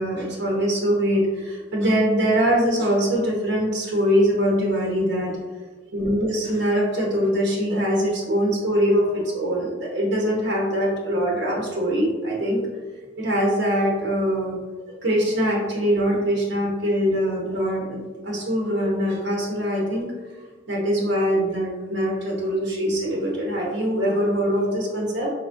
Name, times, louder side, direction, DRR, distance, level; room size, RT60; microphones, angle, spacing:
voice 1, 0.0-5.3 5.9-12.6 13.2-14.6 14.9-20.1 20.7-25.3, equal, 65° right, -3 dB, 0.9 m, -23 dB
4.3 x 2.9 x 2.6 m, 1.4 s
head